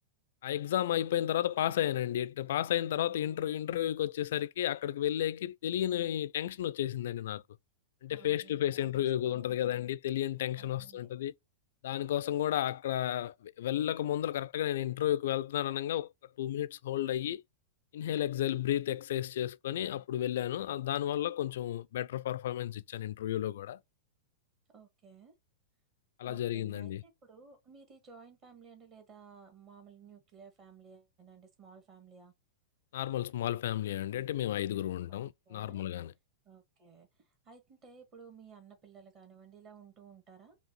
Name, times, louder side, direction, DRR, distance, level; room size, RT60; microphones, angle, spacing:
voice 1, 0.4-7.4 8.0-11.3 11.8-16.1 16.4-17.4 17.9-23.8 26.2-27.0 32.9-36.1, left 12 dB, 60° left, 0.3 m, -32 dB
voice 2, 8.1-9.9 10.5-11.1 24.7-25.3 26.2-32.3 35.1-35.8 36.4-40.6, right 6 dB, 35° right, 1.6 m, -56 dB
5.1 x 2.4 x 3.9 m
figure-of-eight pair, 95°, 0 cm